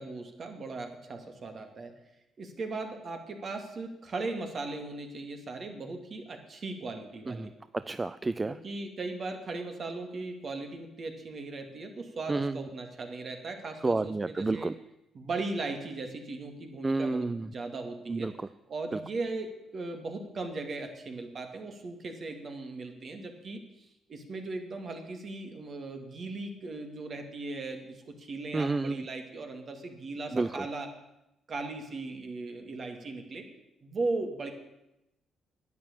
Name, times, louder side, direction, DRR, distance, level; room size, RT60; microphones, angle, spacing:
voice 1, 0.0-1.9 2.4-7.5 8.4-14.7 15.1-18.3 18.7-30.9 31.5-33.5 33.8-34.5, right 3 dB, 50° right, 5 dB, 2.4 m, -38 dB
voice 2, 7.3-8.6 12.3-12.7 13.8-14.7 16.8-17.5 18.1-18.3 28.5-29.0 30.3-30.6, right 3 dB, 25° right, 14 dB, 0.4 m, -30 dB
11.0 x 9.1 x 8.8 m, 0.89 s
cardioid pair, 90°, 0 cm